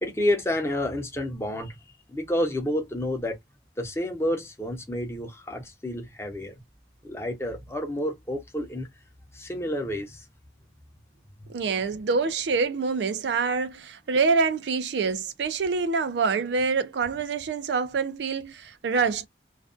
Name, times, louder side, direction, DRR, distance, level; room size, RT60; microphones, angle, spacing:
voice 1, 0.0-1.8 2.1-3.4 3.8-6.5 7.0-8.9 9.3-10.2 11.4-11.5, left 1 dB, 15° left, 0.6 m, -29 dB
voice 2, 11.5-19.3, right 4 dB, 80° right, 0.4 m, -26 dB
2.4 x 2.2 x 2.4 m
head